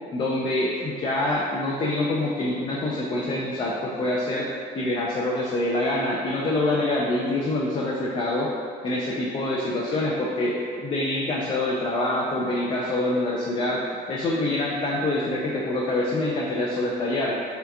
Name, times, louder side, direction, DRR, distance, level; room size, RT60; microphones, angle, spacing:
voice 1, 0.1-4.5 4.7-8.5 8.8-13.8 14.1-17.4, left 1 dB, 30° left, -4 dB, 0.3 m, -25 dB
2.8 x 2.3 x 3.4 m, 2.2 s
cardioid pair, 110°, 17 cm